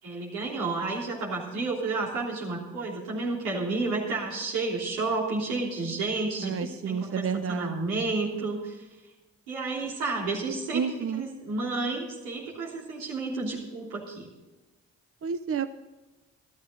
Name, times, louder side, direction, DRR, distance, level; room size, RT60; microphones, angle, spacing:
voice 1, 0.0-8.8 9.5-10.8 11.1-14.3, right 3 dB, 90° right, -4 dB, 3.4 m, -31 dB
voice 2, 6.4-7.7 10.7-11.2 15.2-15.7, right 6 dB, 40° right, 10 dB, 0.8 m, -30 dB
14.0 x 12.5 x 3.9 m, 1.1 s
hypercardioid pair, 45°, 36 cm